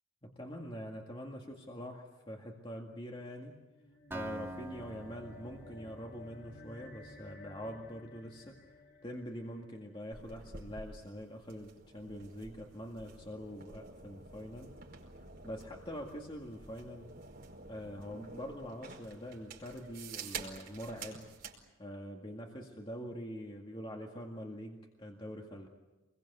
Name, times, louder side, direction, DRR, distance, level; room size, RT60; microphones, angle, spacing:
voice 1, 0.2-3.6 4.1-8.6 9.0-14.7 15.2-17.1 17.6-21.3 21.8-25.7, equal, 25° left, 1 dB, 2.0 m, -44 dB
sound 1, 3.7-10.4, left 2 dB, 50° left, 1.7 m, -55 dB
Acoustic guitar, 4.1-8.0, right 2 dB, 10° right, 2.4 m, -47 dB
sound 2, 10.1-21.6, right 4 dB, 45° right, 5.0 m, -49 dB
28.0 x 22.0 x 8.1 m, 1.1 s
head